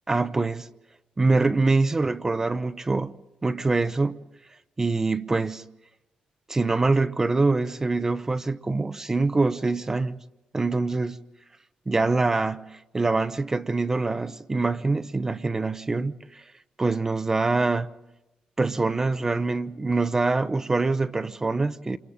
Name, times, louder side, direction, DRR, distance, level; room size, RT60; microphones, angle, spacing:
voice 1, 0.1-0.7 1.2-3.1 3.4-4.2 4.8-5.6 6.5-10.2 10.5-11.2 11.9-16.4 16.8-17.9 18.6-22.0, right 3 dB, 20° right, 0.8 m, -24 dB
29.0 x 28.5 x 3.7 m
cardioid pair, 130°, 3 cm